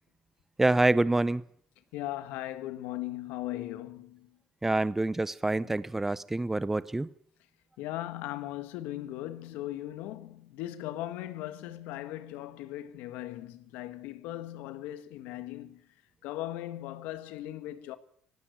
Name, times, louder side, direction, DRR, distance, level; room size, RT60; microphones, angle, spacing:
voice 1, 0.6-1.4 4.6-7.1, right 2 dB, 10° right, 0.8 m, -26 dB
voice 2, 1.9-4.4 5.6-5.7 7.8-15.8 16.2-18.0, left 14 dB, 90° left, 1.7 m, -38 dB
18.0 x 16.0 x 9.4 m
cardioid pair, 110°, 3 cm